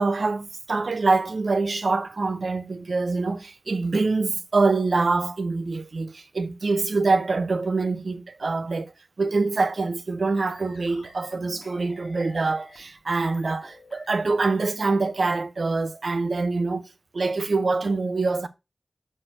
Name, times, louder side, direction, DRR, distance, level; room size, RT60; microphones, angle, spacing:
voice 1, 0.0-8.9 9.2-16.9 17.1-18.5, right 3 dB, 85° right, 0.6 m, -25 dB
sound 1, 10.5-15.4, left 2 dB, 75° left, 1.3 m, -49 dB
6.5 x 4.5 x 4.4 m
wide cardioid pair, 75°, 0 cm